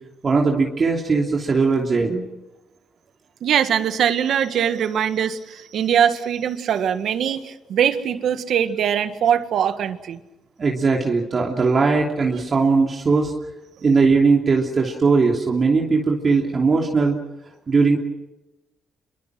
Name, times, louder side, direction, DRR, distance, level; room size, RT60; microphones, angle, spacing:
voice 1, 0.2-2.2 10.6-13.3 13.8-17.2 17.7-18.0, right 4 dB, 40° right, 0 dB, 3.1 m, -19 dB
voice 2, 3.4-10.2, right 8 dB, 70° right, 9 dB, 1.7 m, -22 dB
27.5 x 23.5 x 6.3 m, 0.99 s
cardioid pair, 90°, 0 cm